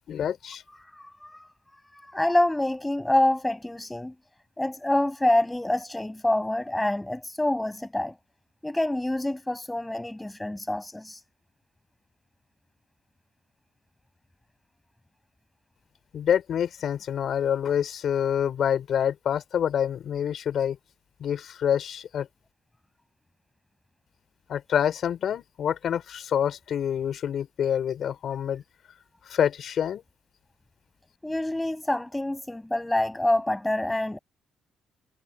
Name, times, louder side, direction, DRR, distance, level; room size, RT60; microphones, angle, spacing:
voice 1, 0.0-0.6 16.1-20.8 21.2-22.3 24.5-28.6 29.3-30.0, left 9 dB, 65° left, 4.6 m, -27 dB
voice 2, 0.7-1.5 1.9-4.1 4.6-8.1 8.6-11.2 31.2-34.2, left 1 dB, 10° left, 6.7 m, -26 dB
cardioid pair, 90°, 0 cm